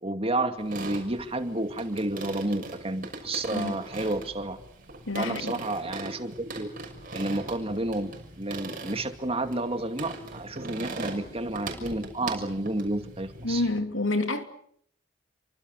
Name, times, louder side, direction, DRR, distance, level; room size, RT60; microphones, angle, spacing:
voice 1, 0.0-4.6 5.2-6.7 7.1-8.1 8.4-13.6, right 2 dB, 30° right, 2.4 m, -30 dB
sound 1, 0.6-13.8, right 2 dB, 45° right, 6.3 m, -40 dB
voice 2, 5.1-5.6 13.4-14.4, left 2 dB, 90° left, 3.1 m, -28 dB
29.0 x 25.0 x 6.6 m
head